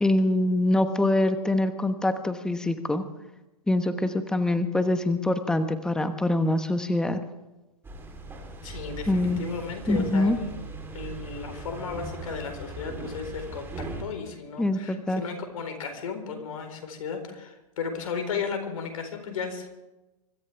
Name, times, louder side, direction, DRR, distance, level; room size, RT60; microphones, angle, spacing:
voice 1, 0.0-3.0 3.7-7.2 9.1-9.4 9.9-10.4 14.6-15.2, left 1 dB, 5° left, 9 dB, 1.1 m, -24 dB
sound 1, 7.8-14.0, right 3 dB, 10° right, 3.5 m, -38 dB
voice 2, 8.6-10.5 10.9-19.7, left 6 dB, 65° left, 6 dB, 4.4 m, -35 dB
25.0 x 13.5 x 3.5 m, 1.0 s
hypercardioid pair, 130°, 19 cm